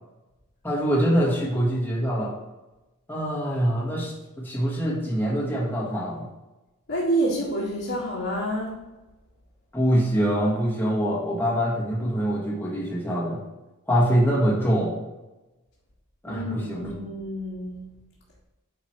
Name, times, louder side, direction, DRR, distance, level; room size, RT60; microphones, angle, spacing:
voice 1, 0.6-2.3 3.1-6.3 9.7-13.4 13.9-15.0 16.2-16.9, equal, 10° left, -4 dB, 1.5 m, -24 dB
voice 2, 6.9-8.8 16.3-17.8, right 1 dB, 60° left, -8 dB, 1.8 m, -28 dB
8.9 x 5.1 x 3.2 m, 1.0 s
head